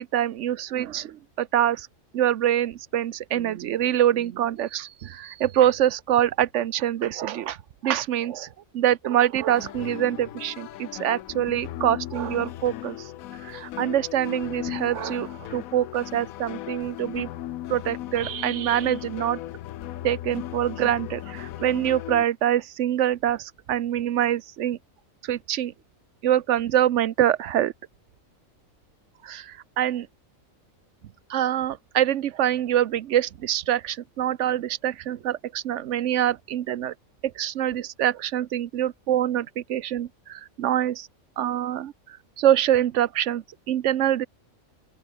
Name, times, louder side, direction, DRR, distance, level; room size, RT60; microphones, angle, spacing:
voice 1, 0.0-1.9 2.1-7.6 7.8-8.5 8.7-13.1 13.4-17.3 17.7-19.4 20.0-24.8 25.2-25.7 26.2-27.7 29.2-30.1 31.3-36.9 37.4-41.1 41.4-41.9 42.4-44.3, right 11 dB, 65° right, 1.0 m, -25 dB
sound 1, 9.5-22.3, left 13 dB, 85° left, 1.1 m, -37 dB
open air
omnidirectional pair, 1.4 m